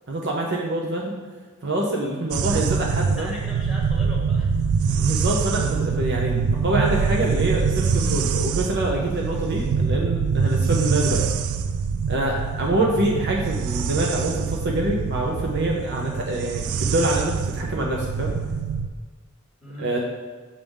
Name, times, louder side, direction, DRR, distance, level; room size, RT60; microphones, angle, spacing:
voice 1, 0.1-1.2 1.6-3.3 5.0-11.2 12.1-18.3 19.8-20.0, right 1 dB, 55° right, -1 dB, 0.7 m, -25 dB
sound 1, 2.3-18.9, right 5 dB, 85° right, 0.3 m, -24 dB
voice 2, 3.2-4.6 12.4-12.6 19.6-19.9, equal, 5° right, -5 dB, 1.7 m, -39 dB
6.7 x 5.3 x 3.5 m, 1.5 s
head